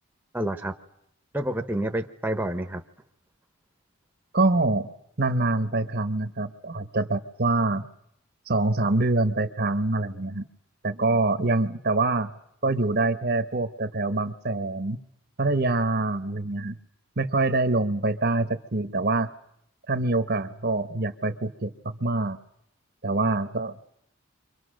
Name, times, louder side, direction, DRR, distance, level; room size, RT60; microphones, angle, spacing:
voice 1, 0.3-0.7 1.3-2.8, right 1 dB, 10° right, 5 dB, 1.0 m, -28 dB
voice 2, 4.3-4.9 5.2-7.8 8.5-10.4 10.8-12.3 12.6-15.0 15.4-16.7 17.2-19.3 19.9-22.4 23.0-23.8, right 2 dB, 50° right, 10 dB, 1.1 m, -25 dB
29.5 x 25.0 x 6.5 m, 0.75 s
head